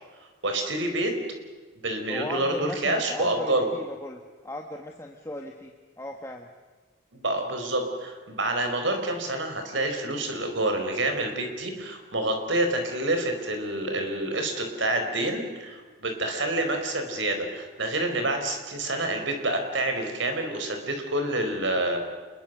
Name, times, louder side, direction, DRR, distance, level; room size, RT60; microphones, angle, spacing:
voice 1, 0.4-1.1 1.8-3.7 7.1-22.0, right 1 dB, 65° right, 5 dB, 4.3 m, -28 dB
voice 2, 2.1-6.5, left 1 dB, 15° left, 2 dB, 1.3 m, -37 dB
27.5 x 21.5 x 6.7 m, 1.4 s
head